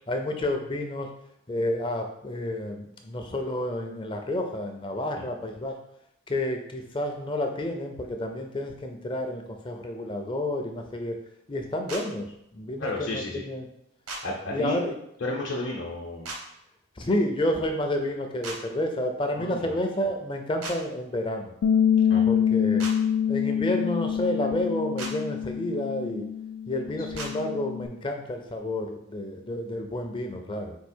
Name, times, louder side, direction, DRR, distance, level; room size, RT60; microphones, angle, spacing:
voice 1, 0.1-1.1 1.5-5.7 6.3-11.2 11.5-13.7 14.5-14.9 17.0-21.5 22.3-22.9 23.3-26.3 26.7-30.8, left 1 dB, 25° left, 4 dB, 0.4 m, -30 dB
sound 1, 11.9-12.0 14.1-14.2 16.2-16.4 18.4-18.6 20.6-20.8 22.8-22.9 25.0-25.1 27.2-27.3, right 2 dB, 80° right, 0.9 m, -35 dB
voice 2, 12.8-13.4 14.2-14.8 15.2-16.3 19.4-19.8 22.1-22.2, left 2 dB, 55° left, -3 dB, 0.8 m, -32 dB
Bass guitar, 21.6-27.9, left 8 dB, 90° left, 0.3 m, -26 dB
4.6 x 2.4 x 4.3 m, 0.76 s
head